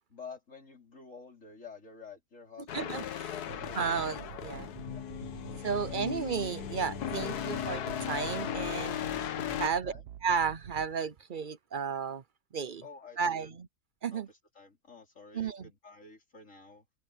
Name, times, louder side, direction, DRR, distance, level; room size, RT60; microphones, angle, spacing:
voice 1, 0.1-3.0 3.3-3.9 4.3-4.6 4.9-5.1 5.7-6.0 9.0-10.0 12.8-13.6 14.1-16.9, left 5 dB, 50° left, 4.3 m, -50 dB
sound 1, 2.7-9.7, left 10 dB, 90° left, 1.5 m, -37 dB
voice 2, 2.7-3.3 3.8-4.7 5.6-9.0 9.6-9.9 10.2-12.2 12.5-12.8 13.2-13.7 14.0-14.3 15.3-15.7, right 6 dB, 50° right, 0.6 m, -33 dB
sound 2, 3.5-10.9, right 11 dB, 85° right, 1.4 m, -48 dB
omnidirectional pair, 1.6 m